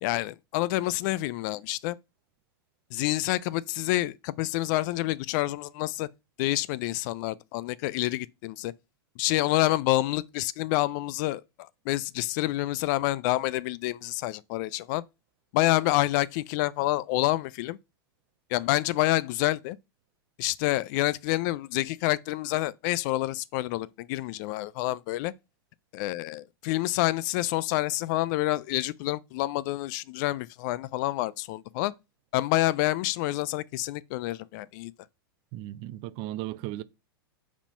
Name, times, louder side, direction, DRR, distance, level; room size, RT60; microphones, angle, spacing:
voice 1, 0.0-2.0 2.9-6.1 6.4-8.7 9.2-15.0 15.5-17.8 18.5-19.8 20.4-25.3 25.9-31.9 32.3-34.9, left 17 dB, 50° left, 0.4 m, -28 dB
voice 2, 35.5-36.8, right 15 dB, 45° right, 0.5 m, -36 dB
4.8 x 3.6 x 5.6 m
hypercardioid pair, 115°, 13 cm